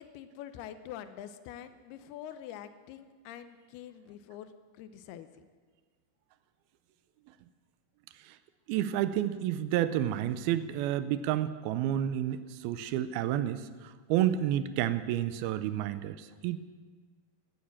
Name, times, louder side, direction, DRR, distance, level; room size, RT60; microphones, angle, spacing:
voice 1, 0.0-5.5, left 10 dB, 85° left, 10 dB, 2.8 m, -45 dB
voice 2, 8.7-16.6, right 11 dB, 80° right, 13 dB, 2.5 m, -30 dB
15.5 x 12.0 x 7.3 m, 1.5 s
omnidirectional pair, 4.4 m